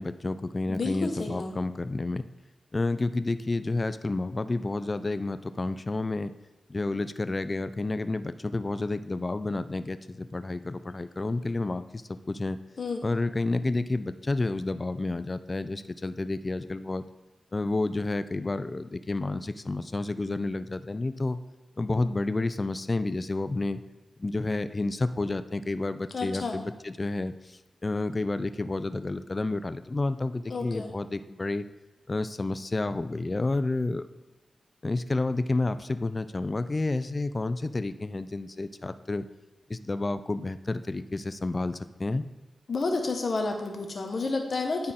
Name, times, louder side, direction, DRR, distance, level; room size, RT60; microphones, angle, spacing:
voice 1, 0.0-2.3 2.7-6.3 6.7-12.6 13.0-17.0 17.5-21.4 21.8-23.8 24.2-31.7 32.1-34.1 34.8-39.3 39.7-42.3, left 2 dB, 35° left, 12 dB, 0.3 m, -30 dB
voice 2, 0.7-1.5 12.8-13.0 26.1-26.6 30.5-30.9 42.7-44.9, left 3 dB, 60° left, 3 dB, 1.1 m, -30 dB
9.6 x 4.3 x 3.6 m, 1.0 s
cardioid pair, 65°, 0 cm